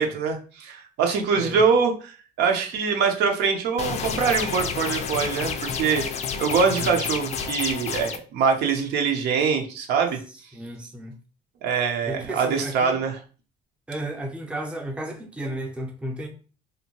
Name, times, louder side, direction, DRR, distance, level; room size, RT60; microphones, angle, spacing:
voice 1, 0.0-6.0 6.4-10.2 11.6-13.2, right 5 dB, 75° right, 0.6 m, -23 dB
sound 1, 3.8-8.2, left 6 dB, 40° left, 0.4 m, -30 dB
voice 2, 6.7-7.2 10.3-11.2 12.1-13.0 13.9-16.3, right 1 dB, 5° right, 0.6 m, -34 dB
2.7 x 2.1 x 2.9 m
cardioid pair, 110°, 17 cm